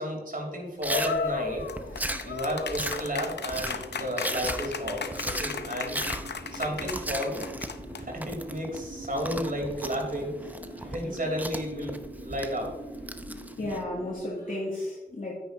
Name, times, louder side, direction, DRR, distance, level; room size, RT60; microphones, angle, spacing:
voice 1, 0.0-6.1 6.5-7.4 8.0-12.8 13.3-13.4, equal, 55° right, 1 dB, 3.2 m, -33 dB
sound 1, 0.8-8.2, left 5 dB, 80° left, 0.6 m, -35 dB
Chewing mastication, 0.8-13.8, right 1 dB, 10° right, 0.7 m, -37 dB
sound 2, 1.2-14.2, right 2 dB, 80° right, 2.5 m, -45 dB
voice 2, 13.6-15.4, left 1 dB, 50° left, -6 dB, 2.4 m, -34 dB
9.4 x 9.4 x 2.7 m, 1.1 s
cardioid pair, 50°, 17 cm